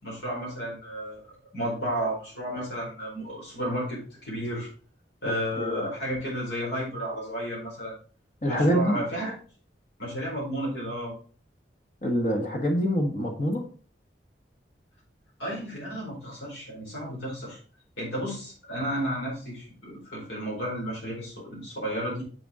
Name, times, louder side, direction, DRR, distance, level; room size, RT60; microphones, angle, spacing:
voice 1, 0.0-4.7 5.2-7.9 8.5-9.3 10.0-11.1 15.4-17.6 18.0-22.2, equal, 80° left, -5 dB, 4.6 m, -32 dB
voice 2, 8.4-9.0 12.0-13.6, equal, 45° left, 1 dB, 1.4 m, -25 dB
6.9 x 6.9 x 3.7 m, 0.41 s
head